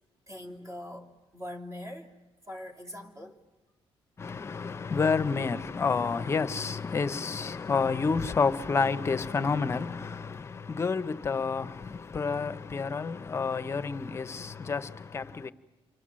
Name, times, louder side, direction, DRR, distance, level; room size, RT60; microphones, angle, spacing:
voice 1, 0.3-2.2 2.5-3.4, left 1 dB, 30° right, 3.0 m, -42 dB
voice 2, 4.2-15.5, left 5 dB, 25° left, 0.8 m, -29 dB
29.0 x 24.0 x 7.5 m
cardioid pair, 155°, 10 cm